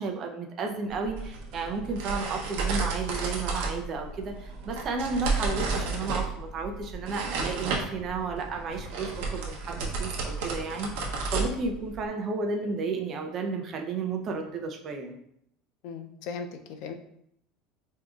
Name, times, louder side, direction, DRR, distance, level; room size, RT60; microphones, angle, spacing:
voice 1, 0.0-15.2, right 4 dB, 35° right, 3 dB, 0.5 m, -33 dB
sound 1, 0.9-12.1, right 4 dB, 75° right, 0.8 m, -32 dB
voice 2, 15.8-16.9, left 5 dB, 65° left, 7 dB, 0.4 m, -38 dB
4.9 x 2.7 x 2.4 m, 0.74 s
supercardioid pair, 135°, 0 cm